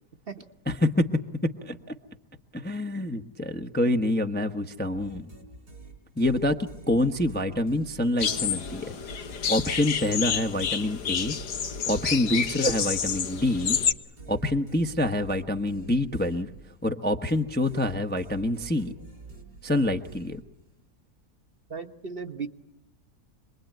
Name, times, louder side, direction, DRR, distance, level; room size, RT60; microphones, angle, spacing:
voice 1, 0.7-1.1 1.6-1.9 2.5-5.3 6.2-6.6 6.9-8.9 9.5-11.4 11.9-13.8 14.3-16.5 16.8-18.9 19.6-20.4, left 1 dB, 10° left, 5 dB, 0.8 m, -26 dB
sound 1, 4.9-8.9 9.3-16.9 17.3-20.8, right 3 dB, 90° right, 4.7 m, -47 dB
sound 2, 8.2-13.9, left 7 dB, 80° left, 1.8 m, -29 dB
voice 2, 21.7-22.5, right 5 dB, 40° right, 6 dB, 1.2 m, -36 dB
26.5 x 21.5 x 9.1 m, 0.80 s
omnidirectional pair, 1.7 m